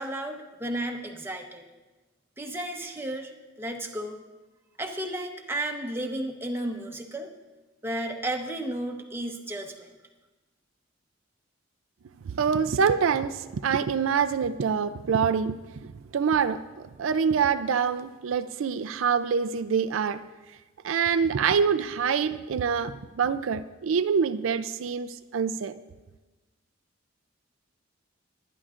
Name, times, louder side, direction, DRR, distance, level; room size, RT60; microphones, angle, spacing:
voice 1, 0.0-1.6 2.4-3.3 3.6-4.2 4.8-7.3 7.8-9.9, right 1 dB, 10° right, 1.0 m, -33 dB
voice 2, 12.2-20.3 20.8-25.8, right 6 dB, 85° right, 0.4 m, -26 dB
21.5 x 9.9 x 2.5 m
head